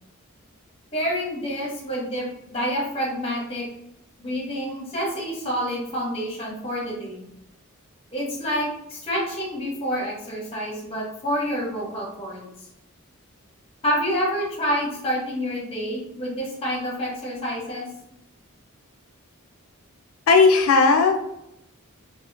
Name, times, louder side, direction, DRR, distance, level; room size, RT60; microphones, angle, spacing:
voice 1, 0.9-3.7 4.2-7.2 8.1-12.5 13.8-17.9, equal, 25° left, -3 dB, 0.9 m, -28 dB
voice 2, 20.3-21.2, left 4 dB, 75° left, 4 dB, 0.3 m, -16 dB
2.8 x 2.4 x 2.4 m, 0.81 s
head